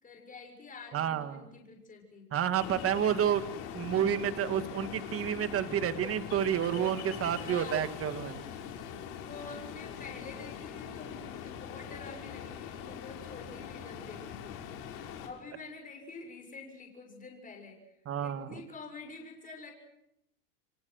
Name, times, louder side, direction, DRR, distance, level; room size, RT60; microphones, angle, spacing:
voice 1, 0.0-2.3 7.4-7.9 8.8-14.6 15.2-17.9 18.2-19.7, left 4 dB, 15° left, 1 dB, 6.9 m, -47 dB
voice 2, 0.9-1.5 2.3-3.4 3.7-8.4 18.1-18.6, right 9 dB, 30° right, 10 dB, 1.9 m, -30 dB
Ocean, 2.6-15.3, left 8 dB, 60° left, 6.3 m, -42 dB
30.0 x 23.5 x 6.5 m, 0.82 s
supercardioid pair, 140°, 48 cm